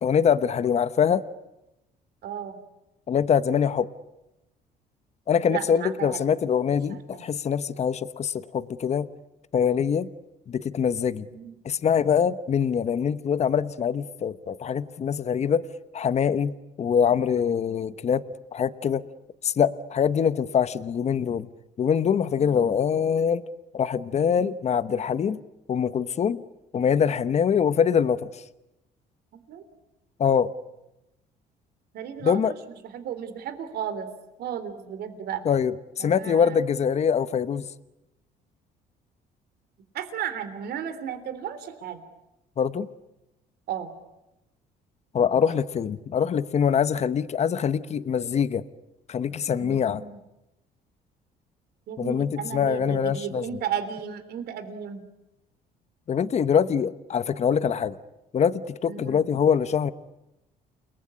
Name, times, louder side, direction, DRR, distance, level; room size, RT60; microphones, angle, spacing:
voice 1, 0.0-1.2 3.1-3.9 5.3-9.1 9.5-10.1 10.5-11.3 11.6-15.7 15.9-18.2 18.5-19.0 19.4-21.5 21.8-23.4 23.7-25.4 25.7-26.4 26.7-28.4 30.2-30.5 32.2-32.5 35.4-37.7 42.6-42.9 45.1-48.6 49.1-50.0 52.0-53.5 56.1-58.0 58.3-59.9, left 7 dB, 40° left, 13 dB, 1.1 m, -24 dB
voice 2, 2.2-2.6 5.5-6.2 6.9-7.3 11.3-11.5 22.3-22.8 29.3-29.6 31.9-32.4 32.8-34.1 34.4-35.4 36.0-36.6 39.9-42.0 43.7-43.9 49.6-50.2 51.9-55.0 58.9-59.2, right 8 dB, 70° right, 11 dB, 3.4 m, -34 dB
29.5 x 20.5 x 9.8 m, 0.94 s
cardioid pair, 110°, 17 cm